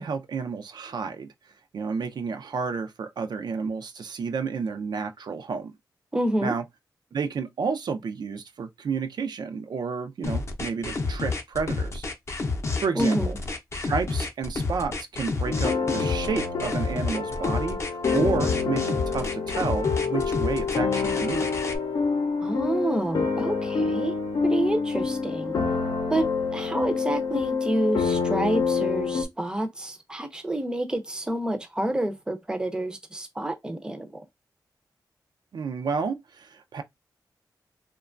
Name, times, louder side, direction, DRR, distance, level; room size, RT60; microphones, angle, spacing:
voice 1, 0.0-1.3 1.7-5.7 6.4-6.6 7.1-12.1 12.8-13.3 13.8-21.6 35.5-36.8, right 5 dB, 70° right, 0.4 m, -31 dB
voice 2, 6.1-6.5 12.9-13.4 22.4-24.1 24.4-25.6 26.1-34.2, right 1 dB, 10° right, 0.5 m, -28 dB
sound 1, 10.2-21.8, left 3 dB, 40° left, 0.5 m, -29 dB
sound 2, 15.5-29.2, left 5 dB, 80° left, 0.6 m, -27 dB
2.9 x 2.2 x 2.4 m
wide cardioid pair, 130°, 7 cm